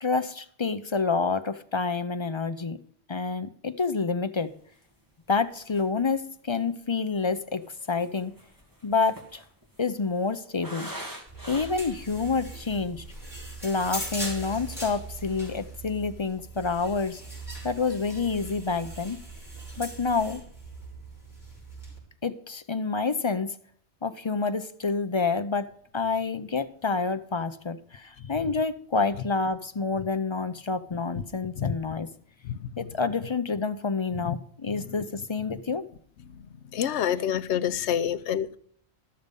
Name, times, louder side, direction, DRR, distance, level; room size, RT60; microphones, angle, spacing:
voice 1, 0.0-2.8 3.1-4.5 5.3-8.3 8.8-9.4 9.8-10.9 11.5-13.0 13.6-17.2 17.6-19.2 19.8-20.4 22.2-23.5 24.0-25.7 25.9-32.1 32.8-35.9, left 4 dB, 35° left, 10 dB, 0.5 m, -28 dB
sound 1, 4.8-4.9 5.3-5.4 5.7-6.1 6.9-12.0 12.5-12.6 12.9-13.3 13.7-14.6 14.8-15.1 15.4-15.7, right 1 dB, 15° right, 2.0 m, -45 dB
sound 2, 11.3-22.0, right 2 dB, ahead, 5.4 m, -40 dB
voice 2, 36.7-38.6, left 9 dB, 80° left, 13 dB, 0.9 m, -27 dB
13.5 x 6.7 x 5.3 m, 0.63 s
omnidirectional pair, 1.1 m